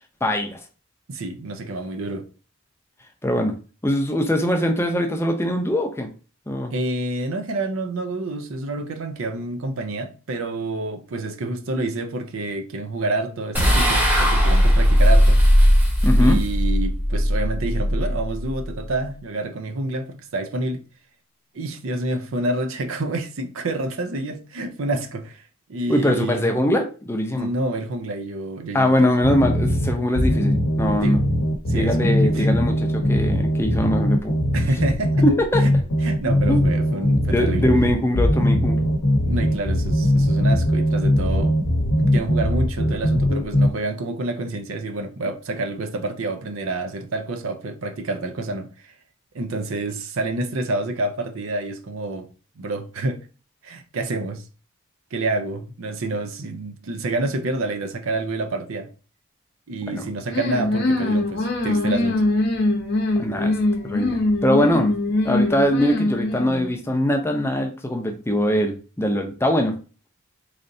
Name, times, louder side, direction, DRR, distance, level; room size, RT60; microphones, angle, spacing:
voice 1, 0.2-0.6 3.2-3.5 3.8-6.1 6.5-6.7 16.0-16.4 25.9-27.5 28.7-31.2 31.7-34.3 35.2-35.6 36.5-36.6 37.3-38.9 59.9-60.0 63.2-63.6 63.8-64.9 65.2-69.7, left 1 dB, 10° left, 0.5 m, -22 dB
voice 2, 1.1-2.3 6.7-15.4 16.2-20.8 21.5-25.4 25.7-26.5 27.3-29.1 31.0-31.2 31.7-32.5 34.5-35.1 35.6-35.7 36.0-37.7 39.3-41.6 42.0-48.9 49.3-52.3 52.6-53.2 53.6-54.4 55.1-58.9 59.7-62.2, right 2 dB, 70° right, 0.5 m, -28 dB
sound 1, 13.5-18.9, equal, 10° right, 0.9 m, -18 dB
sound 2, 29.2-43.7, equal, 90° left, 0.8 m, -20 dB
sound 3, 60.3-66.7, left 2 dB, 50° left, 0.7 m, -22 dB
3.8 x 3.3 x 2.6 m
head